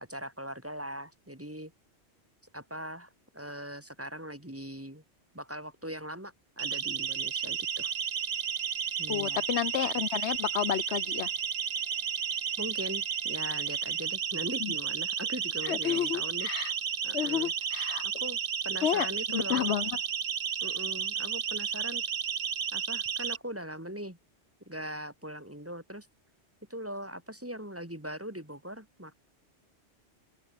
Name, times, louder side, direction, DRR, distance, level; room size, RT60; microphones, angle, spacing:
voice 1, 0.0-1.7 2.5-5.0 5.3-7.9 9.0-9.4 12.6-16.5 17.0-17.5 18.0-18.4 18.6-19.7 20.6-22.0 22.7-24.2 24.7-26.1 26.7-29.1, equal, 10° right, 2.2 m, -40 dB
Siren, 6.6-23.4, right 7 dB, 75° right, 1.4 m, -32 dB
Bowed string instrument, 6.9-14.1, right 1 dB, 55° right, 5.6 m, -58 dB
voice 2, 9.1-11.3 14.6-14.7 15.6-16.7 17.1-18.0 18.8-19.9, left 10 dB, 75° left, 1.0 m, -31 dB
open air
omnidirectional pair, 1.2 m